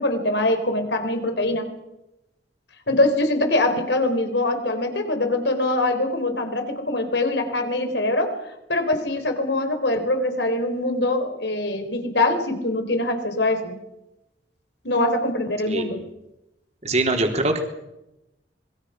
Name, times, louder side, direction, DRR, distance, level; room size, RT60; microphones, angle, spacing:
voice 1, 0.0-1.7 2.9-8.4 8.7-13.7 14.8-16.0, left 2 dB, 70° left, 7 dB, 4.3 m, -23 dB
voice 2, 15.7-16.0 16.8-17.6, right 2 dB, 40° right, 3 dB, 3.7 m, -23 dB
26.0 x 22.0 x 5.9 m, 0.90 s
head